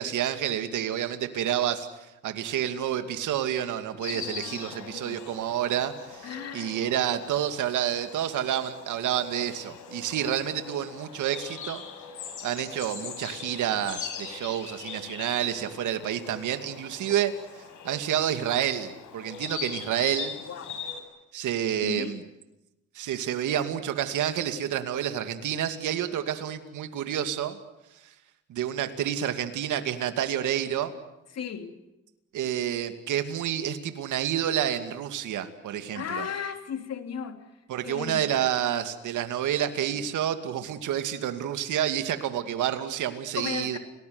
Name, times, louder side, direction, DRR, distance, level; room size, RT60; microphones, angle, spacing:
voice 1, 0.0-1.9 2.2-11.8 12.4-17.3 17.8-20.3 21.3-22.2 22.9-27.6 28.5-30.9 32.3-36.3 37.7-43.8, right 10 dB, 80° right, 8 dB, 2.5 m, -29 dB
Insect, 4.0-21.0, left 7 dB, 80° left, 6.0 m, -41 dB
voice 2, 4.1-5.3 6.2-6.8 20.4-20.8 21.8-22.2 31.3-31.8 35.9-37.4 37.8-38.3 43.3-43.8, left 7 dB, 55° left, 7 dB, 3.4 m, -36 dB
29.5 x 19.5 x 9.6 m, 0.94 s
cardioid pair, 90°, 30 cm